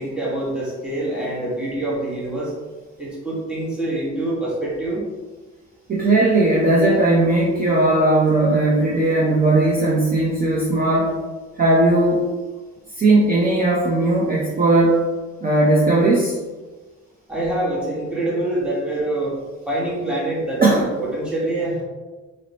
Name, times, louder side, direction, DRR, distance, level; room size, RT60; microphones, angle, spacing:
voice 1, 0.0-2.5 3.0-5.1 17.3-19.3 19.7-21.8, right 1 dB, 5° right, -7 dB, 1.0 m, -25 dB
voice 2, 5.9-11.2 11.6-12.3 12.9-15.0 15.4-16.4 20.6-20.9, right 2 dB, 30° right, -5 dB, 0.5 m, -17 dB
2.8 x 2.0 x 2.8 m, 1.3 s
cardioid pair, 90°, 30 cm